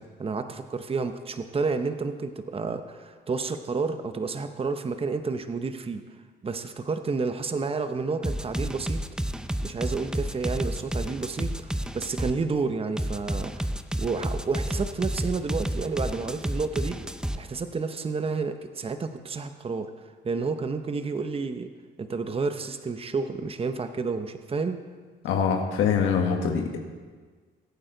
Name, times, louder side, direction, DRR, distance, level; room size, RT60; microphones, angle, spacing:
voice 1, 0.0-6.0 6.4-9.0 9.6-13.7 14.0-17.0 17.4-19.9 20.2-21.7 22.0-24.8, right 4 dB, 30° right, 8 dB, 0.9 m, -30 dB
sound 1, 8.2-12.4 13.0-17.4, right 1 dB, 5° right, 0.6 m, -30 dB
voice 2, 25.2-26.8, left 6 dB, 90° left, 3 dB, 1.5 m, -24 dB
21.5 x 8.9 x 3.9 m, 1.5 s
cardioid pair, 90°, 20 cm